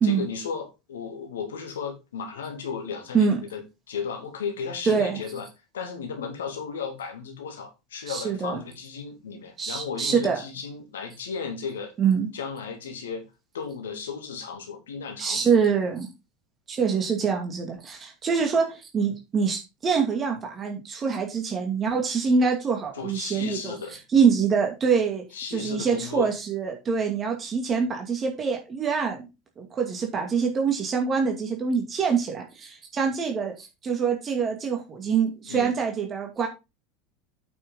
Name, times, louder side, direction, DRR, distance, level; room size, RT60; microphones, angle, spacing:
voice 1, 0.0-5.5 5.7-11.9 12.3-13.3 13.5-15.6 22.9-24.0 25.3-26.3 35.5-35.7, left 6 dB, 75° left, 2.5 m, -35 dB
voice 2, 4.8-5.2 8.1-8.6 9.6-10.4 12.0-12.3 15.2-16.1 16.7-23.8 24.1-29.3 29.6-36.5, right 6 dB, 30° right, 2.3 m, -25 dB
8.6 x 6.2 x 3.8 m
hypercardioid pair, 80°, 0 cm